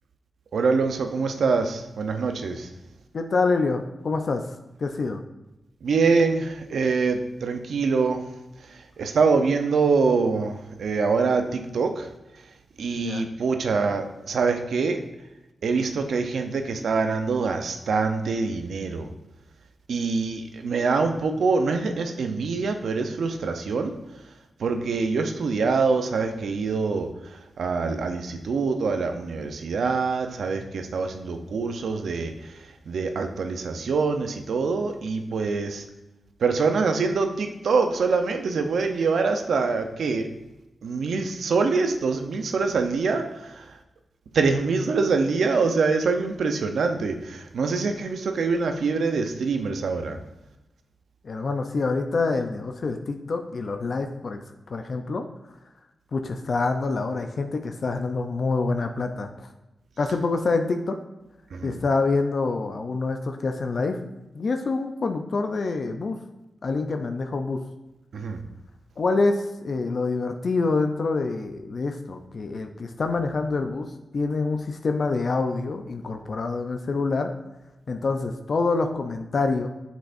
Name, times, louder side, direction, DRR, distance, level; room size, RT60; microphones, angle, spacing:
voice 1, 0.5-2.7 5.8-8.2 8.7-12.1 12.8-15.0 15.6-19.1 19.9-23.9 24.6-32.6 32.9-35.8 36.4-40.3 40.8-43.7 44.3-50.2 61.5-61.8 68.1-68.4, right 4 dB, 80° right, 6 dB, 0.7 m, -25 dB
voice 2, 3.1-5.2 13.0-13.2 51.2-54.4 54.7-55.2 56.1-59.5 60.0-61.0 61.6-64.0 64.3-66.2 66.6-67.6 69.0-73.9 74.1-77.3 77.9-79.7, left 3 dB, 60° left, 6 dB, 0.6 m, -26 dB
8.2 x 6.3 x 2.6 m, 0.99 s
cardioid pair, 65°, 0 cm